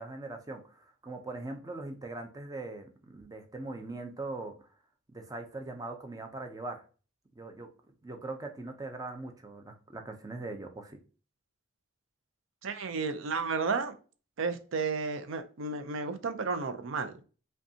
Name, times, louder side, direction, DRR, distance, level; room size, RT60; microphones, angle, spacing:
voice 1, 0.0-4.7 5.1-6.8 7.4-7.7 8.0-11.0, right 2 dB, 15° right, 5 dB, 0.5 m, -41 dB
voice 2, 12.6-13.9 14.4-17.2, right 4 dB, 75° right, 9 dB, 0.5 m, -32 dB
5.2 x 2.3 x 2.7 m, 0.37 s
head